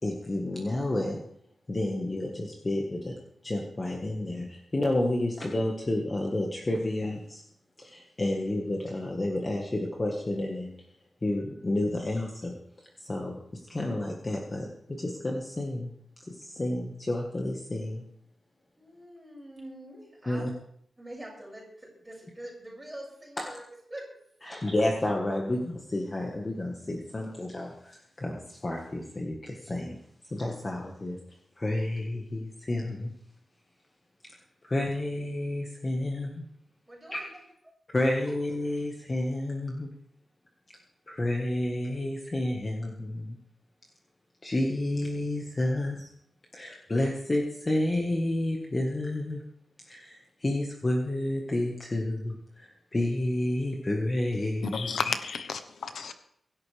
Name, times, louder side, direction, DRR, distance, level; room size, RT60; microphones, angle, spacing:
voice 1, 0.0-1.2 1.7-3.1 3.4-7.4 7.8-10.7 11.2-12.5 13.0-13.3 13.7-15.9 16.2-18.0 20.2-20.5 23.4-23.5 24.4-30.0 30.3-31.2 31.6-33.1 34.6-36.4 37.1-37.2 37.9-39.9 41.1-43.4 44.4-46.1 46.5-49.4 49.9-54.9, left 1 dB, 25° left, 1.6 m, -30 dB
voice 2, 18.8-20.4 21.0-23.6 23.9-24.6 36.9-37.4, right 1 dB, 10° right, 6.7 m, -45 dB
voice 3, 54.7-56.1, left 5 dB, 80° left, 1.1 m, -32 dB
24.5 x 11.0 x 3.5 m
wide cardioid pair, 175°, 0 cm